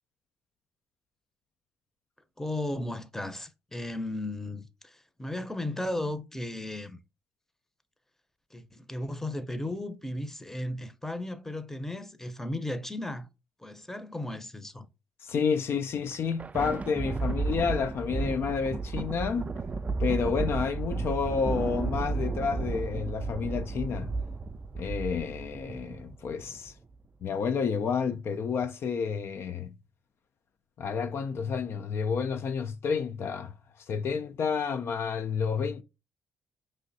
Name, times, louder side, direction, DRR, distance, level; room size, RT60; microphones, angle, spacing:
voice 1, 2.4-7.0 8.5-13.3 13.6-14.9, left 1 dB, 10° left, 0.7 m, -35 dB
voice 2, 15.2-19.5 20.0-24.1 24.7-26.7 27.2-29.8 30.8-35.8, left 6 dB, 55° left, 0.4 m, -30 dB
Thunder, 16.0-26.7, right 4 dB, 30° right, 0.4 m, -33 dB
5.1 x 3.2 x 2.6 m
hypercardioid pair, 55°, 5 cm